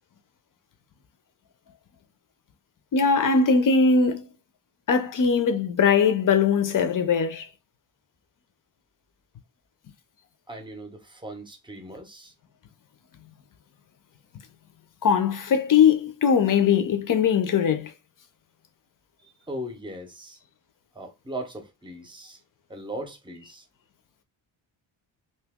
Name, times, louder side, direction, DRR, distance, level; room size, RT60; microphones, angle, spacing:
voice 1, 2.9-4.2 4.9-7.4 15.0-17.9, left 6 dB, 45° left, 0.6 m, -20 dB
voice 2, 10.5-12.3 19.2-20.4 20.9-22.4 22.7-23.6, right 1 dB, 10° right, 0.7 m, -38 dB
2.9 x 2.8 x 3.5 m
wide cardioid pair, 175°, 45 cm